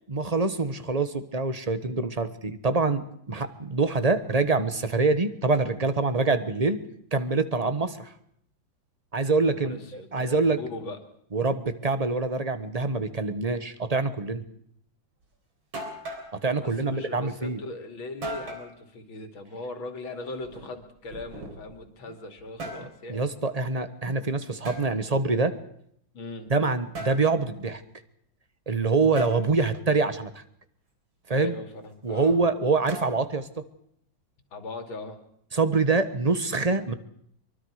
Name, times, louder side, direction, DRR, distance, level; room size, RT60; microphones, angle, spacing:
voice 1, 0.1-6.8 7.1-8.1 9.1-10.6 11.3-14.4 16.4-17.6 23.1-25.5 26.5-27.8 28.7-30.4 31.3-31.5 32.0-33.5 35.5-36.9, right 3 dB, 25° right, 11 dB, 1.0 m, -25 dB
voice 2, 9.4-11.0 16.6-23.3 26.1-26.5 31.3-32.4 34.5-35.2, left 2 dB, 85° left, 6 dB, 3.1 m, -39 dB
sound 1, 15.2-15.3 15.7-16.3 18.2-18.7 20.4-21.8 22.4-22.9 24.6-24.9 26.9-27.3 29.2-29.4 32.9-33.4, right 1 dB, 85° right, 4.9 m, -37 dB
24.0 x 24.0 x 4.9 m, 0.69 s
omnidirectional pair, 2.1 m